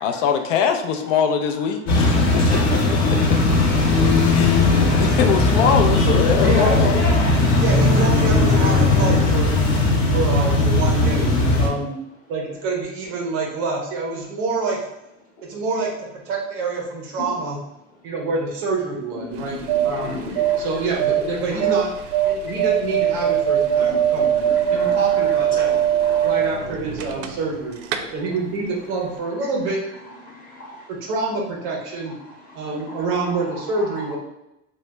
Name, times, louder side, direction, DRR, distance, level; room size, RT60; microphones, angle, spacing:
voice 1, 0.0-2.3 4.3-4.5 5.0-7.1, left 7 dB, 85° left, 6 dB, 0.5 m, -22 dB
sound 1, 1.9-11.7, left 2 dB, 60° left, 1.0 m, -17 dB
voice 2, 6.4-7.1 7.5-9.6 10.1-11.9 12.3-14.8 15.4-17.6 18.0-20.2 20.6-21.9 22.2-25.8 26.2-27.8 28.1-29.9 30.9-32.1 32.5-34.2, right 3 dB, 35° right, 0 dB, 0.5 m, -27 dB
voice 3, 19.3-20.8 21.2-21.8 23.7-26.3 28.0-28.1 30.2-30.9 32.4-32.6 33.7-34.0, left 2 dB, 20° left, -3 dB, 0.7 m, -36 dB
sound 2, 19.3-27.6 27.8-28.0, right 10 dB, 90° right, 0.5 m, -21 dB
3.0 x 2.1 x 3.3 m, 0.90 s
supercardioid pair, 175°, 37 cm